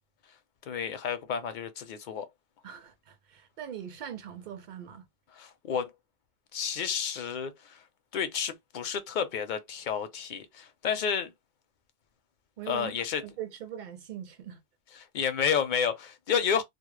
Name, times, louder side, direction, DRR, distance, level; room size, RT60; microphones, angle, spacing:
voice 1, 0.7-2.3 5.4-5.9 6.5-7.8 8.1-11.3 12.7-13.2 15.1-16.6, left 7 dB, 60° left, 0.6 m, -30 dB
voice 2, 2.6-5.1 12.6-12.9 13.2-14.6, right 10 dB, 55° right, 0.6 m, -41 dB
2.2 x 2.0 x 3.0 m
omnidirectional pair, 1.1 m